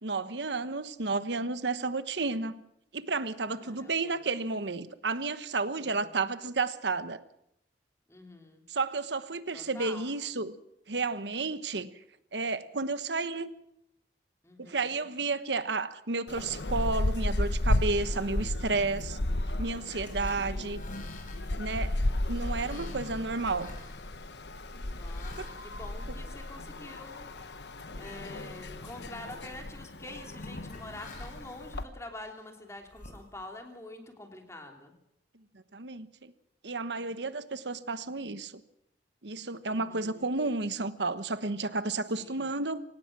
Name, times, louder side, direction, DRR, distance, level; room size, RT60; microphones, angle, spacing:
voice 1, 0.0-2.6 2.9-7.2 8.7-10.6 10.9-11.9 12.3-13.5 14.6-19.2 19.6-20.8 21.6-21.9 22.3-23.7 25.4-25.5 35.7-36.3 36.6-38.6 39.2-42.8, right 3 dB, 85° right, 1.2 m, -32 dB
voice 2, 3.6-4.2 5.8-6.1 8.1-8.6 9.5-10.1 14.4-15.0 24.8-27.3 28.0-34.9 39.6-40.3 42.2-42.5, left 2 dB, 15° left, 3.2 m, -47 dB
sound 1, 16.3-31.8, left 1 dB, 75° left, 1.2 m, -34 dB
sound 2, 19.8-26.8 27.3-27.5 27.9-28.5 28.8-29.4 30.0-31.6 32.2-33.7, left 3 dB, 50° left, 4.9 m, -52 dB
25.0 x 18.0 x 6.1 m
head